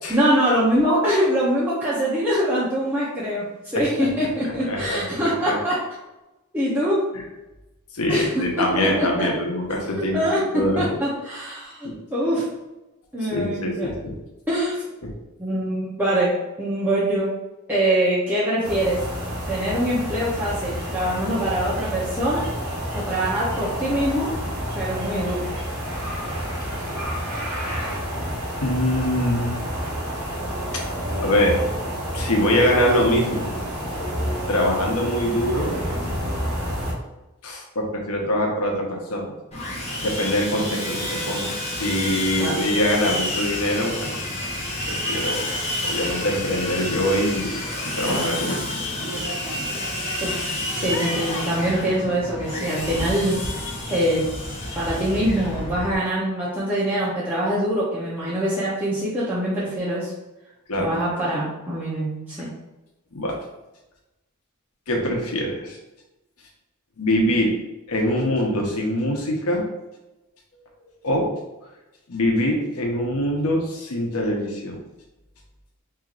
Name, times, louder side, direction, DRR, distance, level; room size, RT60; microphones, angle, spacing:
voice 1, 0.1-3.4 3.7-5.8 6.5-7.0 8.1-9.3 10.1-12.4 13.1-13.9 14.5-14.8 15.4-16.3 16.6-17.3 17.7-19.0 19.5-22.4 22.9-24.3 24.7-25.5 42.3-42.5 50.2-50.4 50.7-53.4 53.9-54.3 54.7-60.1 60.8-62.5, right 1 dB, 10° right, -9 dB, 0.7 m, -23 dB
voice 2, 3.7-4.1 4.7-5.6 7.9-10.2 10.5-11.0 11.8-12.0 13.3-14.2 28.6-29.6 31.2-31.6 32.1-33.5 34.5-35.7 37.4-39.2 40.0-44.2 44.9-45.5 45.8-47.7 48.0-48.6 50.8-50.9 60.7-61.0 63.1-63.4 64.9-65.8 67.0-67.5 67.9-69.6 71.0-71.3 72.1-74.8, left 1 dB, 80° left, 0 dB, 0.9 m, -23 dB
sound 1, 18.6-36.9, equal, 90° right, 1.3 m, -29 dB
Sawing, 39.5-56.0, left 1 dB, 30° left, 0.8 m, -29 dB
4.5 x 2.8 x 2.5 m, 1.0 s
head